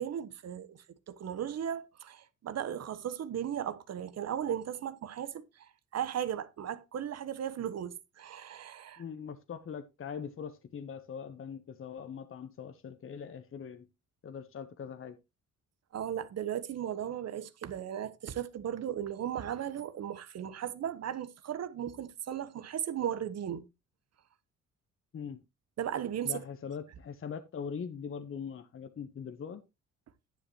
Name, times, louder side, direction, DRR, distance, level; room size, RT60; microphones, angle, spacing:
voice 1, 0.0-9.0 15.9-23.7 25.8-26.4, right 9 dB, 55° right, 1.1 m, -36 dB
voice 2, 9.0-13.9 14.2-15.2 25.1-25.4 26.2-29.6, left 7 dB, 45° left, 1.1 m, -41 dB
10.5 x 10.0 x 3.0 m
cardioid pair, 90°, 30 cm